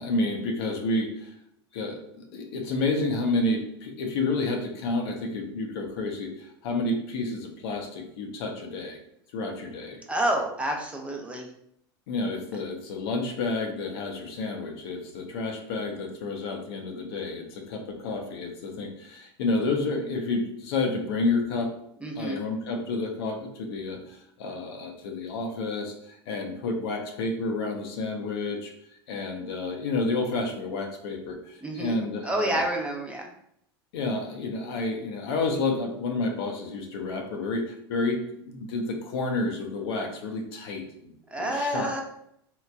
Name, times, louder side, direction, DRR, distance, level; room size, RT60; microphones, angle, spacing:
voice 1, 0.0-1.3 1.7-9.0 9.3-10.0 12.1-21.7 22.2-28.7 29.1-32.5 33.9-38.2 38.5-41.1 41.4-41.9, left 3 dB, 70° left, 2 dB, 0.7 m, -30 dB
voice 2, 10.1-11.5 22.0-22.4 31.6-33.2 41.3-42.0, right 1 dB, 10° right, 1 dB, 0.6 m, -29 dB
3.7 x 3.0 x 2.2 m, 0.73 s
hypercardioid pair, 100°, 13 cm